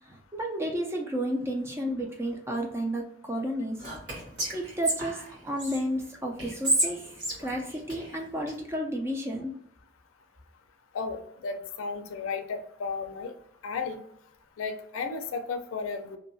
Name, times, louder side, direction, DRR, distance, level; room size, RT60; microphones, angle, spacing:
voice 1, 0.1-3.8 4.5-7.0 7.4-9.5, equal, 10° right, 1 dB, 0.3 m, -32 dB
Whispering, 3.8-5.8 6.4-8.5, right 1 dB, 55° right, 1.5 m, -31 dB
voice 2, 10.9-13.3 13.6-14.0 14.6-16.2, left 4 dB, 90° left, 7 dB, 0.4 m, -34 dB
2.6 x 2.3 x 2.6 m, 0.73 s
head